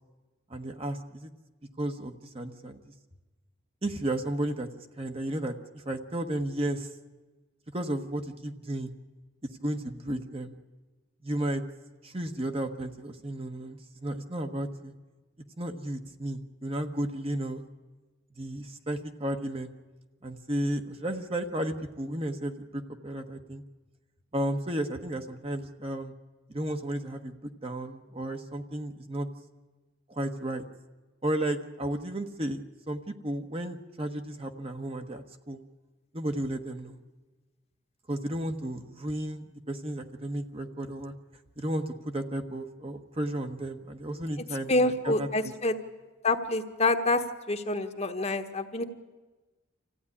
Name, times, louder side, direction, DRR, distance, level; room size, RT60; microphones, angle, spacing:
voice 1, 0.5-1.3 1.8-2.8 3.8-4.7 5.0-6.9 7.7-8.9 9.6-10.6 11.2-11.6 12.0-14.9 15.6-17.6 18.4-19.7 20.2-23.6 24.3-26.1 26.5-27.4 27.6-29.3 30.1-30.6 31.2-32.6 32.9-35.6 36.1-37.0 38.1-41.1 41.6-45.5, right 1 dB, 30° right, 6 dB, 1.2 m, -33 dB
voice 2, 44.7-45.7 46.2-47.2 47.5-48.8, left 2 dB, 35° left, 6 dB, 1.2 m, -27 dB
26.0 x 15.0 x 9.9 m, 1.2 s
head